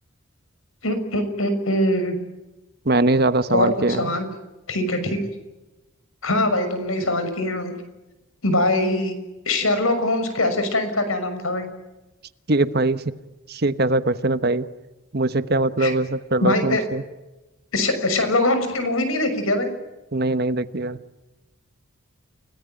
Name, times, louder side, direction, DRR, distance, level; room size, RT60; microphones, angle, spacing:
voice 1, 0.8-2.2 3.5-4.3 4.7-5.2 6.2-7.7 8.4-9.2 9.4-11.7 15.8-15.9 16.4-16.8 17.7-19.7, left 1 dB, 75° left, 9 dB, 6.3 m, -22 dB
voice 2, 2.8-4.0 12.5-13.0 13.5-14.7 15.1-17.0 20.1-21.0, right 2 dB, 45° right, 12 dB, 1.1 m, -21 dB
30.0 x 18.0 x 9.3 m, 1.1 s
head